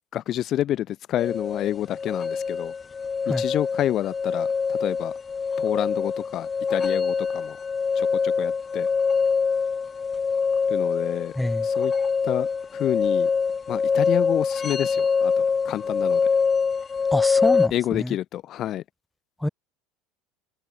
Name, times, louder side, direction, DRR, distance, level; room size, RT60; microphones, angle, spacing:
voice 1, 0.1-2.7 3.3-5.1 5.6-7.6 7.9-8.9 10.7-11.3 11.6-11.9 12.2-13.3 13.7-16.2 17.7-18.8, left 12 dB, 45° left, 5.0 m, -28 dB
sound 1, 1.2-17.7, left 5 dB, 25° left, 1.0 m, -24 dB
voice 2, 11.4-11.7 17.1-18.2 19.4-19.5, left 1 dB, 5° left, 4.5 m, -26 dB
figure-of-eight pair, 70°, 0 cm